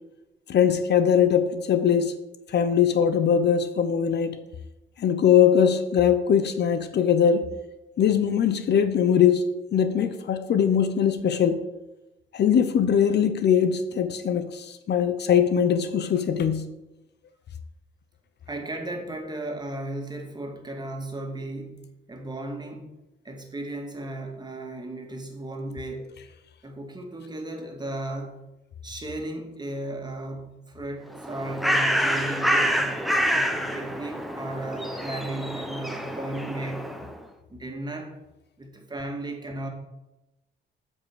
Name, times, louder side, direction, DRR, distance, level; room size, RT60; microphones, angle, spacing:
voice 1, 0.5-2.1 2.5-4.4 5.0-7.5 8.0-11.6 12.3-16.7, left 8 dB, 60° left, 10 dB, 0.8 m, -21 dB
voice 2, 18.5-22.9 23.2-26.1 26.6-28.4 28.8-33.0 33.3-36.9 37.5-38.2 38.6-39.7, right 2 dB, 20° right, 2 dB, 2.2 m, -35 dB
Bird, 31.1-37.2, equal, ahead, 1.0 m, -27 dB
8.1 x 5.4 x 7.1 m, 0.98 s
cardioid pair, 90°, 20 cm